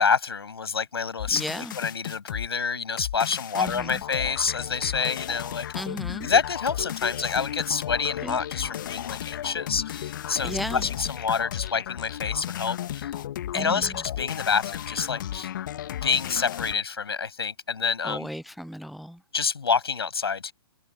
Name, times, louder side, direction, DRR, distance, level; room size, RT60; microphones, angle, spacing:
voice 1, 0.0-5.7 6.2-13.1 13.5-15.5 16.0-18.3 19.3-20.5, left 5 dB, 70° left, 7.6 m, -27 dB
sound 1, 1.2-2.5 3.0-16.8, left 11 dB, 50° left, 1.7 m, -34 dB
voice 2, 1.3-1.7 3.6-4.0 5.7-6.3 8.2-8.4 10.4-10.8 13.6-13.8 18.0-19.2, equal, ahead, 0.6 m, -34 dB
figure-of-eight pair, 120°, 13 cm